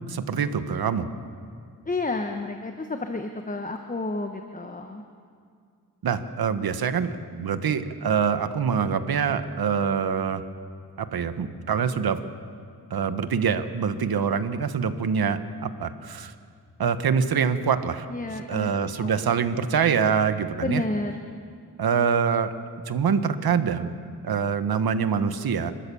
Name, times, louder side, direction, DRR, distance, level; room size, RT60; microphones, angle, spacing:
voice 1, 0.1-1.0 6.0-10.4 11.0-12.2 12.9-16.3 16.8-18.1 18.5-20.8 21.8-22.5 22.9-24.0 24.2-25.7, right 6 dB, 70° right, 10 dB, 1.2 m, -25 dB
voice 2, 1.9-5.0 18.1-18.7 19.0-19.2 20.6-21.2, left 2 dB, 20° left, 5 dB, 1.1 m, -30 dB
30.0 x 13.0 x 7.0 m, 2.2 s
cardioid pair, 85°, 38 cm